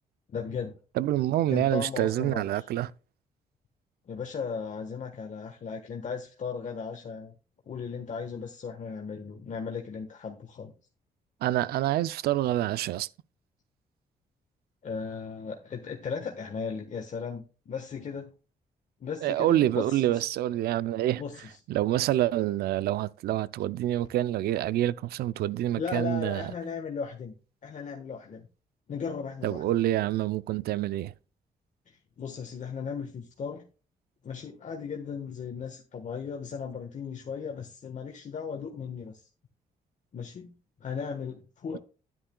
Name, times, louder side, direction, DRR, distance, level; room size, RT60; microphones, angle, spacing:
voice 1, 0.3-0.8 1.5-2.6 4.1-7.3 7.7-10.7 14.8-18.3 19.0-20.3 21.2-21.3 25.8-27.3 27.6-28.5 28.9-29.7 31.9-33.6 34.2-39.2 40.1-40.5 40.8-41.8, left 6 dB, 50° left, 1.3 m, -36 dB
voice 2, 1.0-2.9 11.4-13.1 19.2-21.2 21.7-26.5 29.4-31.1, right 13 dB, 85° right, 0.4 m, -27 dB
10.5 x 10.0 x 2.3 m
cardioid pair, 80°, 16 cm